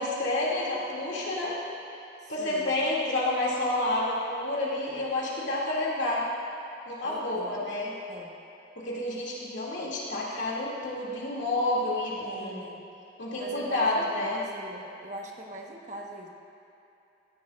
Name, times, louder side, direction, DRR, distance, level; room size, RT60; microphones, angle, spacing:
voice 1, 0.0-1.6 2.3-6.2 6.9-7.9 8.8-12.6 13.2-14.4, left 2 dB, 80° left, -6 dB, 2.6 m, -29 dB
voice 2, 2.2-2.8 7.0-7.7 8.1-8.4 12.2-12.8 13.4-16.3, right 1 dB, 40° right, 0 dB, 1.2 m, -42 dB
16.0 x 13.5 x 2.5 m, 2.9 s
head